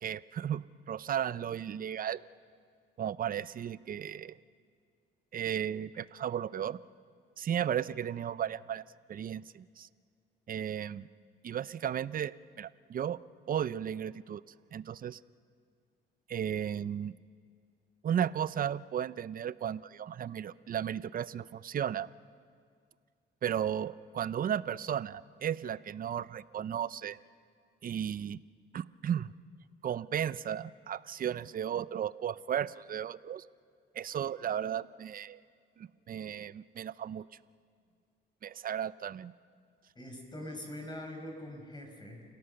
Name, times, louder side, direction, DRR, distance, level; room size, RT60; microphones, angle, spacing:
voice 1, 0.0-2.2 3.0-4.3 5.3-6.8 7.4-8.8 9.1-9.9 10.5-11.1 11.4-13.2 13.5-14.4 14.7-15.2 16.3-17.1 18.0-22.1 23.4-27.2 27.8-28.4 28.7-29.4 29.8-33.4 33.9-35.4 35.8-37.2 38.4-39.3, right 9 dB, 45° right, 17 dB, 0.6 m, -34 dB
voice 2, 40.0-42.2, left 1 dB, 20° left, 3 dB, 5.3 m, -43 dB
29.0 x 17.0 x 6.7 m, 2.2 s
cardioid pair, 90°, 20 cm